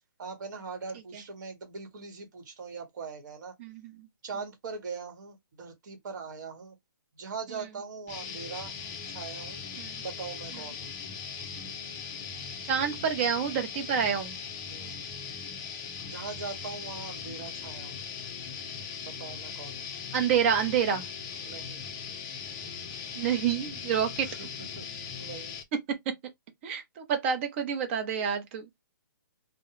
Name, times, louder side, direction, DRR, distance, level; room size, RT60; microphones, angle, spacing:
voice 1, 0.2-3.5 4.2-6.8 7.1-8.7 9.1-9.6 10.0-10.9 14.7-14.9 16.0-18.0 19.0-19.9 21.4-21.8 24.2-24.9 25.2-25.6, right 5 dB, 55° right, 1.1 m, -41 dB
voice 2, 3.6-4.1 9.8-10.0 12.6-14.4 20.1-21.0 23.1-24.3 26.6-28.7, right 8 dB, 35° right, 0.7 m, -28 dB
sound 1, 8.1-25.6, left 6 dB, 20° left, 0.4 m, -39 dB
2.2 x 2.0 x 3.0 m
hypercardioid pair, 150°, 11 cm